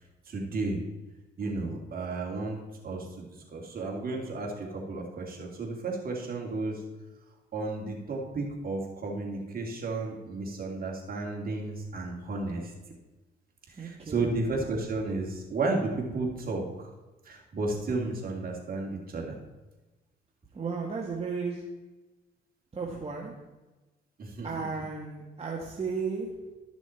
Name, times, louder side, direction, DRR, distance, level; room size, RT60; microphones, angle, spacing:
voice 1, 0.3-0.8 1.4-2.6 2.8-6.8 7.5-12.7 13.7-16.9 17.2-19.3 24.2-24.5, right 3 dB, 45° right, 0 dB, 2.5 m, -33 dB
voice 2, 13.7-14.4 20.5-21.6 22.7-23.3 24.4-26.3, right 5 dB, 30° right, -2 dB, 1.5 m, -34 dB
12.5 x 6.2 x 4.4 m, 1.1 s
cardioid pair, 90°, 20 cm